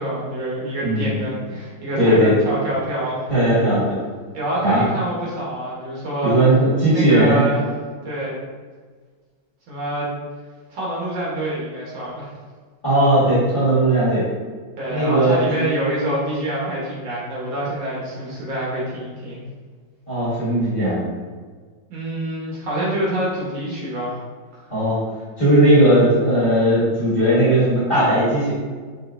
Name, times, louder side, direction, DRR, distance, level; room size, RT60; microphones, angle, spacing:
voice 1, 0.0-3.3 4.3-6.4 6.9-7.7 8.0-8.4 9.7-10.1 10.7-12.3 14.8-19.4 21.9-24.2 24.6-24.7, right 1 dB, 70° right, -6 dB, 1.9 m, -26 dB
voice 2, 0.8-1.2 2.0-2.3 3.3-4.0 4.6-4.8 6.2-7.4 12.8-14.2 14.9-15.7 20.1-21.1 24.7-25.0 25.4-28.5, right 1 dB, 30° left, -11 dB, 1.4 m, -17 dB
5.4 x 2.5 x 2.4 m, 1.5 s
omnidirectional pair, 2.1 m